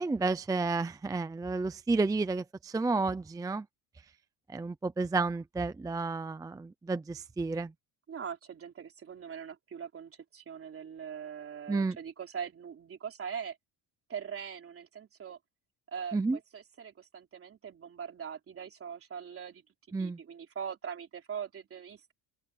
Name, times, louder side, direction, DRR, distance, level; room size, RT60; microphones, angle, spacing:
voice 1, 0.0-3.7 4.5-7.7 11.7-12.0 16.1-16.4 19.9-20.2, right 3 dB, 10° right, 0.5 m, -31 dB
voice 2, 8.1-13.6 14.1-15.4 15.9-19.6 20.0-22.1, right 7 dB, 30° right, 3.7 m, -42 dB
open air
cardioid pair, 155°, 41 cm